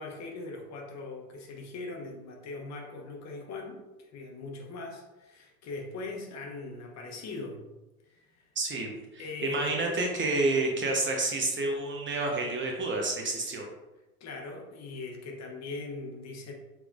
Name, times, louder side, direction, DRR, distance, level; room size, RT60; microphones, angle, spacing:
voice 1, 0.0-7.6 8.1-8.5 9.2-10.0 10.5-10.6 14.2-16.5, left 3 dB, 35° left, 0 dB, 1.1 m, -40 dB
voice 2, 8.6-13.7, right 2 dB, 25° right, 0 dB, 1.0 m, -29 dB
6.0 x 3.4 x 2.4 m, 1.1 s
hypercardioid pair, 80°, 44 cm